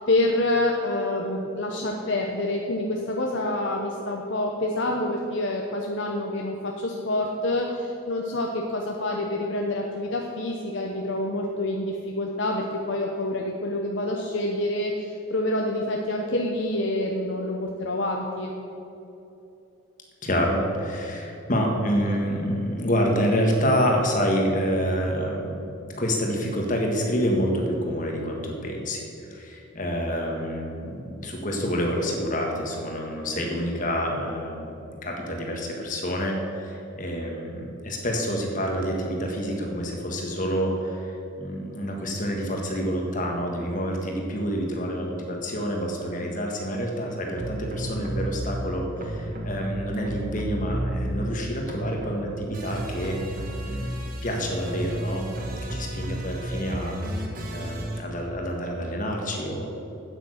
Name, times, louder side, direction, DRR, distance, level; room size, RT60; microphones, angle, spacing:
voice 1, 0.0-18.5, left 1 dB, 55° left, 0 dB, 0.8 m, -27 dB
voice 2, 20.2-29.0 29.3-41.1 41.4-53.2 53.6-60.0, equal, 40° left, 1 dB, 1.6 m, -28 dB
sound 1, 47.4-48.5 49.0-51.4 51.6-58.0, right 1 dB, 40° right, 1.3 m, -32 dB
8.8 x 8.4 x 6.5 m, 2.9 s
head